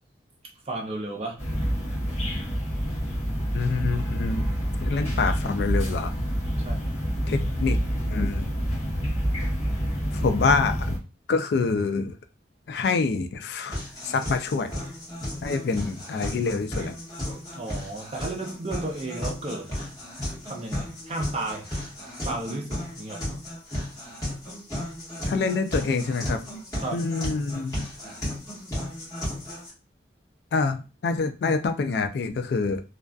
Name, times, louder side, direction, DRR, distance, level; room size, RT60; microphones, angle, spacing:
voice 1, 0.6-1.4 6.6-7.0 17.6-19.8 20.4-21.7 22.2-23.3 26.8-27.1, right 2 dB, 35° right, 2 dB, 0.5 m, -33 dB
sound 1, 1.4-11.0, equal, 40° left, 0.8 m, -27 dB
voice 2, 3.5-4.5 4.8-6.2 7.3-7.8 8.1-8.5 10.1-10.9 11.3-12.2 12.7-14.7 15.4-16.9 25.3-26.5 26.9-27.8 30.5-32.8, left 4 dB, 60° left, 7 dB, 0.3 m, -26 dB
sound 2, 13.7-29.7, left 1 dB, 20° left, 1.1 m, -34 dB
2.4 x 2.3 x 2.2 m, 0.31 s
head